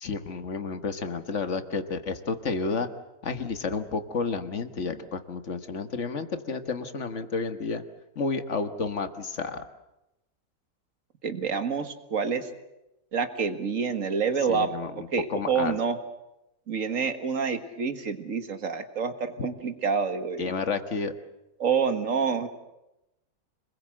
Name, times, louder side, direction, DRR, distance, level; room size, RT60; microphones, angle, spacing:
voice 1, 0.0-2.9 3.2-7.8 8.2-9.7 14.5-15.8 19.4-19.5 20.4-21.1, left 4 dB, 55° left, 9 dB, 1.7 m, -31 dB
voice 2, 11.2-12.5 13.1-14.7 15.1-16.0 16.7-20.5 21.6-22.5, right 5 dB, 60° right, 8 dB, 2.0 m, -27 dB
26.5 x 20.5 x 7.7 m, 0.93 s
omnidirectional pair, 1.6 m